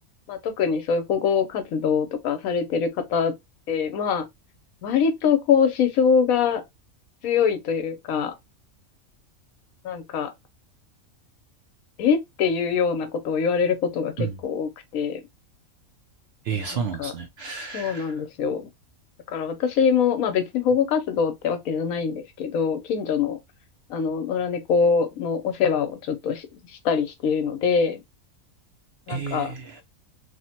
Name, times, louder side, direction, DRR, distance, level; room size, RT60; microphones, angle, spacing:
voice 1, 0.3-3.3 3.7-4.3 4.8-6.6 7.2-8.3 9.8-10.3 12.0-15.2 16.5-17.1 17.7-18.7 19.3-23.4 23.9-26.5 26.8-28.0 29.1-29.5, left 6 dB, 80° left, 1.1 m, -24 dB
voice 2, 16.5-18.1 29.1-29.8, right 6 dB, 65° right, 0.7 m, -31 dB
3.1 x 2.1 x 2.7 m
omnidirectional pair, 1.5 m